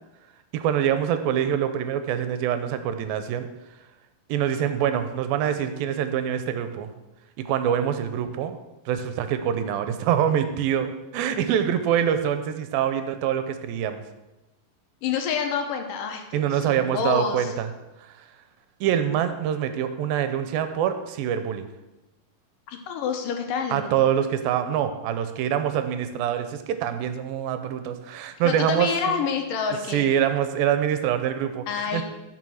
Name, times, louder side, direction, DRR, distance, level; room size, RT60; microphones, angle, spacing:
voice 1, 0.5-3.5 4.3-6.9 7.5-8.6 8.9-14.0 16.3-17.7 18.8-21.7 23.7-29.2 29.9-32.0, right 9 dB, 80° right, 9 dB, 2.6 m, -25 dB
voice 2, 15.0-17.5 22.7-23.9 28.4-30.1 31.7-32.0, left 6 dB, 70° left, 5 dB, 2.6 m, -28 dB
11.5 x 6.1 x 6.3 m, 1.0 s
omnidirectional pair, 4.2 m